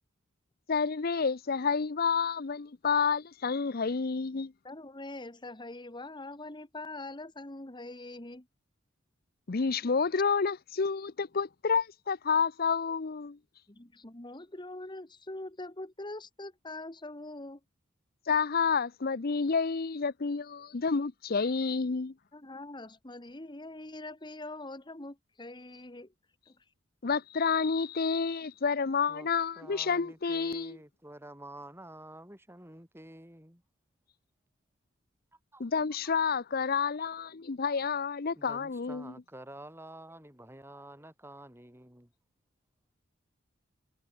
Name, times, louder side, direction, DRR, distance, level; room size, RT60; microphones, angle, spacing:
voice 1, 0.7-4.5 9.5-13.4 18.3-22.1 27.0-30.8 35.6-39.1, left 5 dB, 50° left, 0.6 m, -29 dB
voice 2, 4.6-8.5 13.7-17.6 22.3-26.1 26.5-26.6, left 2 dB, 25° left, 1.6 m, -43 dB
voice 3, 29.6-33.6 35.3-35.6 37.7-37.8 38.3-42.1, right 1 dB, 10° right, 7.2 m, -49 dB
head